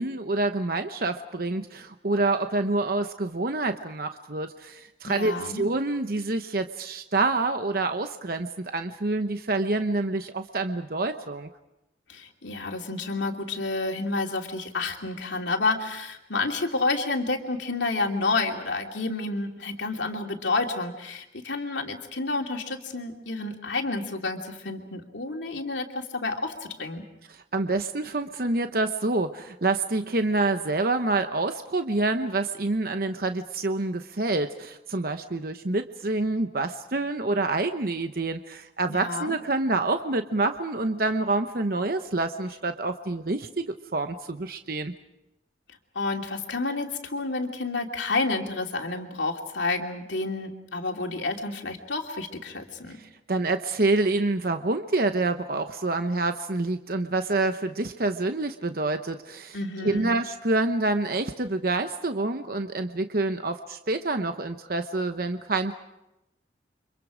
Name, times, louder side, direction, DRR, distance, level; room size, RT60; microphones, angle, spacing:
voice 1, 0.0-11.5 27.3-43.6 43.9-44.9 52.9-65.7, right 2 dB, 55° right, 7 dB, 0.9 m, -27 dB
voice 2, 5.1-5.6 12.1-27.0 38.9-39.3 45.9-53.0 59.5-60.1, left 3 dB, 85° left, 2 dB, 2.8 m, -30 dB
30.0 x 25.5 x 5.1 m, 0.92 s
head